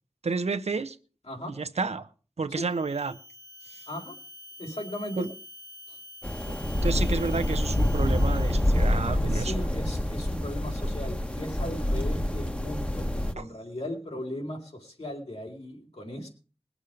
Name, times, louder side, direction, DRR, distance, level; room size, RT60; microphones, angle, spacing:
voice 1, 0.2-1.0 1.6-2.1 2.4-3.2 3.7-3.8 5.2-5.3 6.5-9.5 13.4-13.5, right 4 dB, 85° right, 0.9 m, -30 dB
sound 1, 2.6-9.2, equal, 40° left, 1.1 m, -48 dB
voice 2, 4.6-5.3 5.9-6.0 9.2-16.3, left 1 dB, 70° left, 3.6 m, -37 dB
sound 2, 6.2-13.3, left 1 dB, 10° left, 1.1 m, -27 dB
21.0 x 7.3 x 5.1 m
wide cardioid pair, 65°, 11 cm